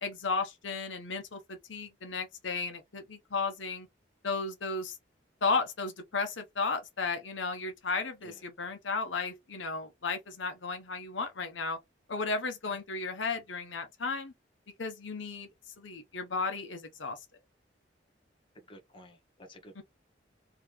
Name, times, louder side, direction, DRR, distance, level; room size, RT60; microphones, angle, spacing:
voice 1, 0.0-3.9 4.2-5.0 5.4-11.8 12.1-14.3 14.8-15.5 15.8-17.2 19.7-19.8, left 4 dB, 90° left, 0.9 m, -34 dB
voice 2, 18.5-19.8, equal, 25° left, 1.2 m, -52 dB
3.8 x 2.9 x 3.1 m
head